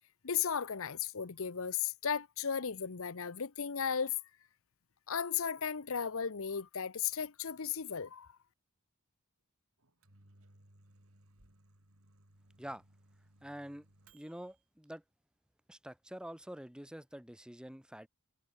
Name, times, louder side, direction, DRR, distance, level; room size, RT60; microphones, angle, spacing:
voice 1, 0.2-4.2 5.1-8.3, left 7 dB, 65° left, 0.8 m, -35 dB
Microwave oven, 9.8-14.6, right 1 dB, 65° right, 5.1 m, -64 dB
voice 2, 13.4-13.8 14.1-15.0 15.7-18.1, equal, 5° right, 1.1 m, -46 dB
head